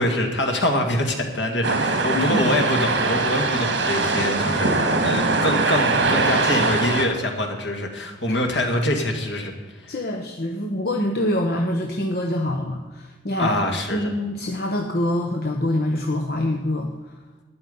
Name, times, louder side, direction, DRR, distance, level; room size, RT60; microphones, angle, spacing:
voice 1, 0.0-9.9 13.4-14.0, left 1 dB, 80° left, 2 dB, 2.2 m, -25 dB
sound 1, 1.6-7.1, right 3 dB, 80° right, 1.8 m, -22 dB
voice 2, 2.1-2.5 8.2-8.4 9.9-13.6 13.9-17.1, left 1 dB, 55° left, 1 dB, 1.0 m, -25 dB
12.0 x 9.8 x 5.5 m, 1.2 s
head